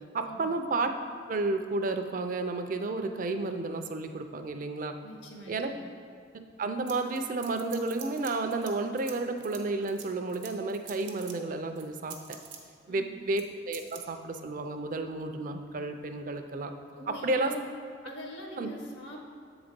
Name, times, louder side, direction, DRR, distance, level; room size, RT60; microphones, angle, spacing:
voice 1, 0.1-0.9 1.3-5.0 5.5-5.7 6.6-12.2 12.9-16.7 17.1-17.5 18.6-18.7, right 3 dB, 45° right, 7 dB, 0.4 m, -31 dB
voice 2, 5.0-5.9 12.9-13.3 16.9-17.7 18.0-19.2, equal, 70° left, 0 dB, 1.1 m, -43 dB
sound 1, 6.9-8.7 9.0-11.3 11.8-12.6 13.4-13.5 13.7-14.0, right 9 dB, 90° right, 0.8 m, -45 dB
7.5 x 4.0 x 5.1 m, 2.2 s
head